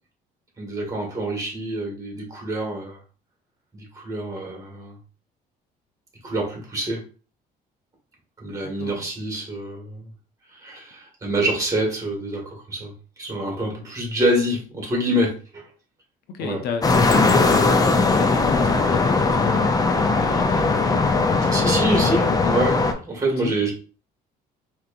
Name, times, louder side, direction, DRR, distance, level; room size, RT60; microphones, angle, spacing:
voice 1, 0.6-3.0 3.7-5.0 6.2-7.1 8.4-10.0 10.5-12.9 13.2-15.6 16.4-16.6 21.5-22.8 23.1-23.7, right 1 dB, 20° right, 1.8 m, -26 dB
voice 2, 8.6-9.1 16.3-17.6 18.0-21.1 21.3-22.8 23.4-23.6, left 6 dB, 70° left, 0.6 m, -31 dB
sound 1, 16.8-22.9, left 3 dB, 20° left, 0.5 m, -19 dB
4.5 x 3.0 x 2.5 m
cardioid pair, 110°, 17 cm